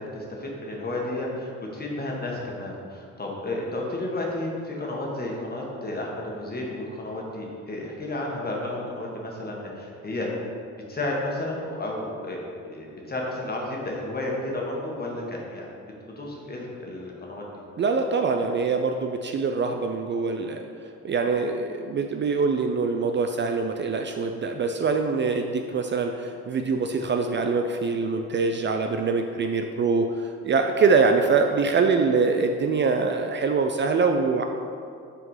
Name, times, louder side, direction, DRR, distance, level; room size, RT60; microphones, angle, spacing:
voice 1, 0.0-10.3 10.9-12.4 12.7-15.7 16.2-17.4, left 1 dB, 30° left, -2 dB, 1.5 m, -32 dB
voice 2, 17.8-20.6 21.0-34.4, right 4 dB, 40° right, 5 dB, 0.4 m, -24 dB
5.7 x 3.7 x 5.5 m, 2.4 s
cardioid pair, 90°, 30 cm